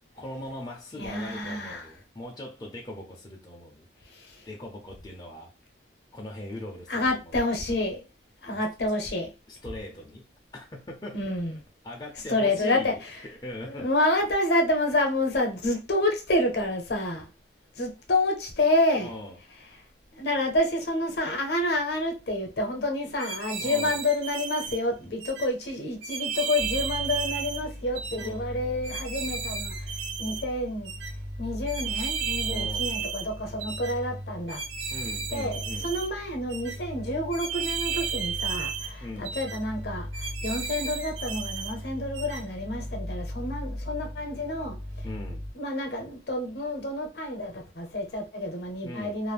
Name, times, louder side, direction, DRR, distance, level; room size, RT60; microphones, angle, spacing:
voice 1, 0.1-3.9 4.5-5.5 6.1-7.5 8.5-8.6 9.5-10.2 10.5-11.2 11.8-13.0 13.3-13.9 19.0-19.4 23.6-24.0 28.2-28.6 32.5-33.0 34.9-36.0 39.0-39.4 45.0-45.4 48.8-49.2, left 1 dB, 20° left, 0.5 m, -40 dB
voice 2, 1.0-1.8 4.3-4.4 6.9-8.0 8.4-9.3 11.1-11.6 12.3-13.0 13.6-17.3 17.8-19.1 20.1-29.7 30.2-30.9 31.4-34.6 35.3-44.8 45.5-49.3, left 1 dB, 60° left, 0.7 m, -28 dB
sound 1, 23.2-24.8 25.2-25.5 26.0-27.6 28.0-28.3 28.8-30.4 30.8-31.1 31.7-33.3 33.6-33.9 34.5-36.1 36.5-36.8 37.3-38.9 39.2-39.6 40.1-41.7 42.1-42.4, right 6 dB, 70° right, 0.5 m, -33 dB
sound 2, 26.6-45.5, equal, 55° right, 1.2 m, -38 dB
2.5 x 2.0 x 3.3 m
head